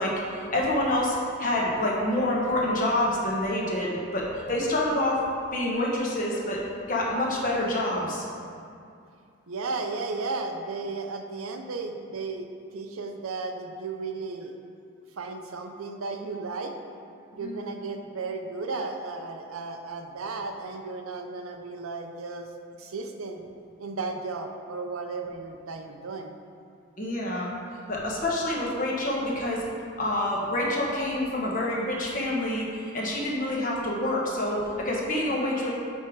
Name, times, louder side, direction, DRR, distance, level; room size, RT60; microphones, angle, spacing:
voice 1, 0.0-5.2 5.5-6.6 6.9-8.2 17.4-17.5 27.0-27.5 27.9-29.6 30.0-35.7, left 1 dB, 40° left, -3 dB, 1.2 m, -27 dB
voice 2, 9.5-14.6 15.2-16.7 17.4-22.5 22.8-23.5 23.8-26.4, right 3 dB, 80° right, 5 dB, 0.6 m, -34 dB
8.8 x 3.6 x 4.6 m, 2.4 s
head